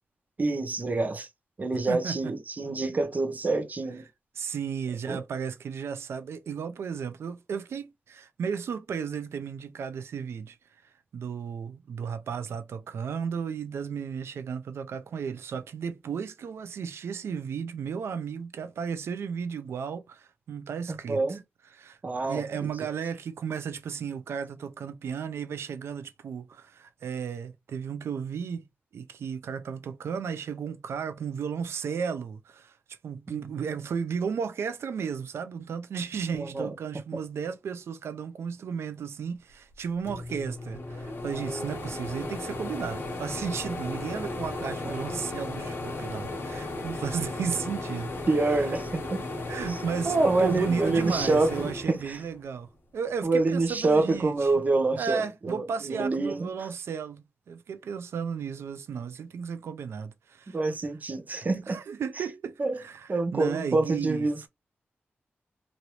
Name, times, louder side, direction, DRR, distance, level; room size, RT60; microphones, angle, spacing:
voice 1, 0.4-1.3 1.6-4.0 5.1-5.2 21.1-21.4 22.0-22.4 33.3-33.5 36.3-36.7 41.5-41.7 48.3-49.2 49.7-49.8 50.0-52.2 53.2-56.5 60.5-61.8 62.6-62.8 63.1-64.4, right 3 dB, 40° right, 0.8 m, -27 dB
voice 2, 1.9-2.3 4.4-10.6 10.8-21.4 21.7-28.7 28.9-48.1 48.4-48.8 49.5-52.7 52.9-54.6 55.0-60.6 61.7-64.5, right 6 dB, 85° right, 0.5 m, -34 dB
sound 1, 39.7-39.8 40.1-52.7 53.1-54.2, left 2 dB, 60° left, 1.0 m, -35 dB
3.1 x 2.6 x 2.9 m
cardioid pair, 80°, 4 cm